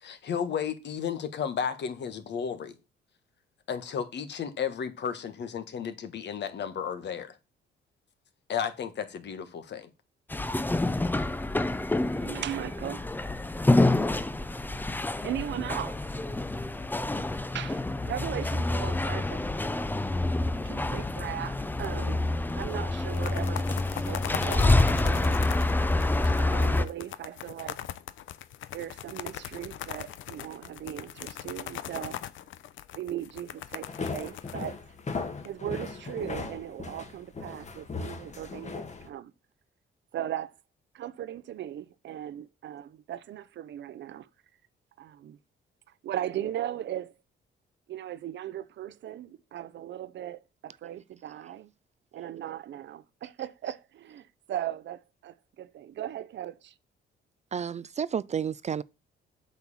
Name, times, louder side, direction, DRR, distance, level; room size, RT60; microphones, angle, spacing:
voice 1, 0.0-2.8 3.7-7.4 8.5-9.9, left 7 dB, 60° left, 1.6 m, -33 dB
sound 1, 10.3-26.9, left 2 dB, 10° left, 0.6 m, -27 dB
voice 2, 12.1-13.1 15.2-16.3 17.5-19.5 20.6-22.3 22.6-23.7 24.0-25.4 26.0-27.9 28.7-32.3 32.9-34.9 35.4-39.3 40.1-40.5 40.9-44.3 45.0-45.4 46.0-47.1 47.9-51.7 52.1-56.7, right 11 dB, 65° right, 0.7 m, -38 dB
sound 2, 21.8-22.3 22.5-22.6 23.0-35.5, left 12 dB, 75° left, 0.7 m, -40 dB
sound 3, 33.9-39.1, left 4 dB, 35° left, 1.7 m, -37 dB
voice 3, 57.5-58.8, right 7 dB, 35° right, 0.4 m, -31 dB
8.2 x 4.4 x 7.1 m
cardioid pair, 90°, 20 cm